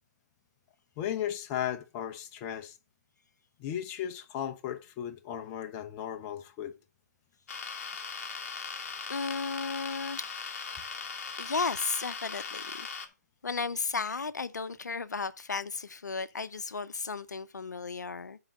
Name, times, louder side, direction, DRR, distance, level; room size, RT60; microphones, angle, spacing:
voice 1, 1.0-2.8 3.6-6.7, left 10 dB, 20° left, 0.7 m, -36 dB
sound 1, 7.5-13.1, left 5 dB, 50° left, 1.4 m, -39 dB
voice 2, 8.5-8.8 9.1-10.7 11.4-12.9 13.4-18.4, left 4 dB, 85° left, 0.6 m, -34 dB
8.8 x 3.8 x 5.8 m
hypercardioid pair, 145°, 9 cm